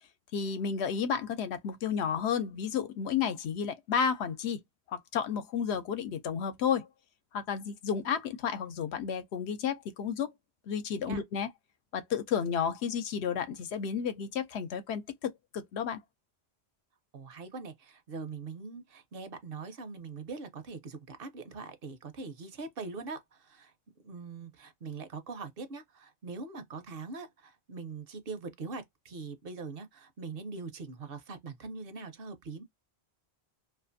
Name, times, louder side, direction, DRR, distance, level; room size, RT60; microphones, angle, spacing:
voice 1, 0.3-4.6 4.9-6.9 7.3-10.3 10.7-11.5 11.9-16.0, left 7 dB, 80° left, 0.9 m, -32 dB
voice 2, 17.1-32.6, right 4 dB, 65° right, 0.8 m, -42 dB
2.5 x 2.4 x 2.5 m
omnidirectional pair, 1.1 m